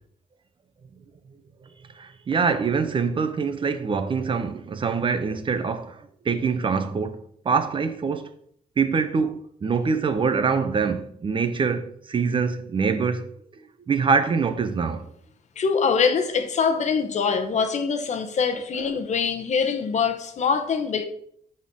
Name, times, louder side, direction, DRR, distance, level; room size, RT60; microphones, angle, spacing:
voice 1, 2.0-6.0 6.3-8.3 8.8-13.3 13.9-15.1 18.8-18.9, right 5 dB, 35° right, 0.7 m, -24 dB
voice 2, 15.6-21.0, left 5 dB, 50° left, 1.0 m, -24 dB
9.0 x 4.3 x 6.2 m
wide cardioid pair, 160°, 15 cm